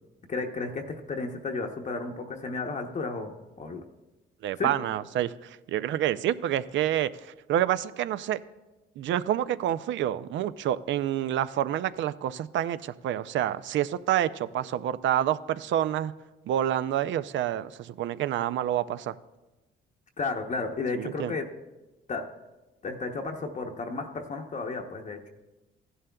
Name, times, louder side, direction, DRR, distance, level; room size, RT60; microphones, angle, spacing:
voice 1, 0.3-3.3 3.6-3.8 4.6-4.7 20.2-21.5 22.1-22.3 22.8-25.2, left 3 dB, 40° left, 2 dB, 0.8 m, -33 dB
voice 2, 4.4-8.4 9.0-16.1 16.5-19.2 20.9-21.4, right 11 dB, 70° right, 14 dB, 0.4 m, -28 dB
15.5 x 11.0 x 2.3 m, 1.1 s
cardioid pair, 90°, 20 cm